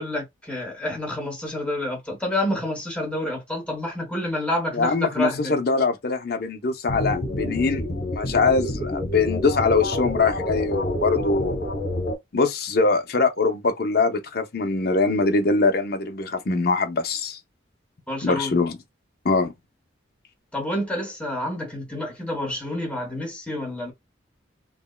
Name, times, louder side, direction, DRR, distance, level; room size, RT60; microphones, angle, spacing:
voice 1, 0.0-5.6 18.1-18.6 20.5-23.9, left 1 dB, 5° left, 0.9 m, -28 dB
voice 2, 4.7-11.6 12.3-17.4 18.2-18.8 19.2-19.5, left 3 dB, 50° left, 0.5 m, -23 dB
sound 1, 6.9-12.2, left 1 dB, 70° left, 1.2 m, -28 dB
3.4 x 2.1 x 2.2 m
head